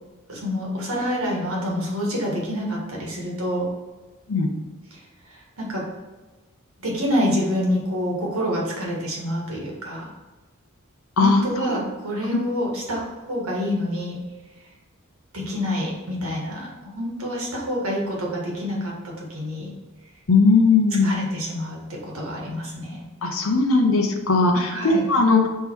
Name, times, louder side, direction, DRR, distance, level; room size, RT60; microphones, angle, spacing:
voice 1, 0.3-3.7 4.9-5.0 5.3-5.9 6.8-10.1 11.2-14.2 15.3-19.7 21.0-23.1 24.7-25.0, equal, 85° right, -2 dB, 1.8 m, -27 dB
voice 2, 20.3-21.1 23.2-25.5, left 3 dB, 80° left, 2 dB, 0.8 m, -18 dB
5.4 x 3.7 x 4.7 m, 1.2 s
head